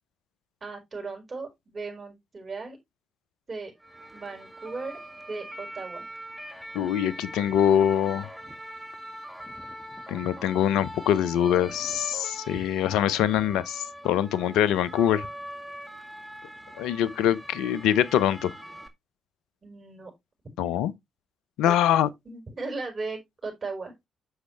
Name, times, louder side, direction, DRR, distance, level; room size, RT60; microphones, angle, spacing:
voice 1, 0.6-2.8 3.5-3.7 4.1-5.0 5.3-6.0 19.6-20.1 21.6-21.8 22.3-23.9, right 3 dB, 40° right, 5.3 m, -37 dB
sound 1, 3.8-18.9, equal, ahead, 1.9 m, -42 dB
voice 2, 6.7-8.3 10.1-15.3 16.8-18.5 20.6-20.9 21.6-22.1, left 10 dB, 75° left, 0.7 m, -24 dB
8.0 x 6.6 x 3.3 m
hypercardioid pair, 45°, 0 cm